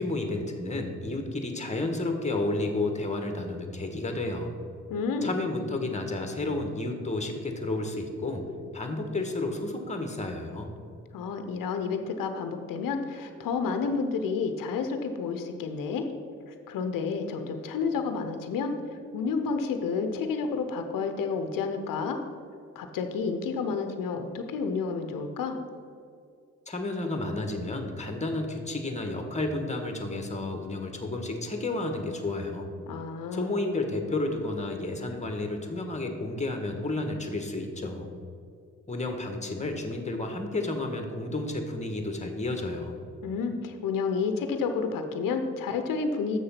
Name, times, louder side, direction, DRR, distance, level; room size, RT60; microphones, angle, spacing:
voice 1, 0.0-4.6 5.2-8.5 8.7-10.7 26.7-32.7 33.3-38.1 38.9-42.9, left 2 dB, 20° left, 4 dB, 1.6 m, -31 dB
voice 2, 4.9-5.3 11.1-16.1 16.5-18.7 19.1-22.2 22.7-25.6 32.9-33.5 43.2-46.4, left 5 dB, 70° left, 7 dB, 0.9 m, -30 dB
6.6 x 6.6 x 5.8 m, 2.4 s
hypercardioid pair, 45°, 35 cm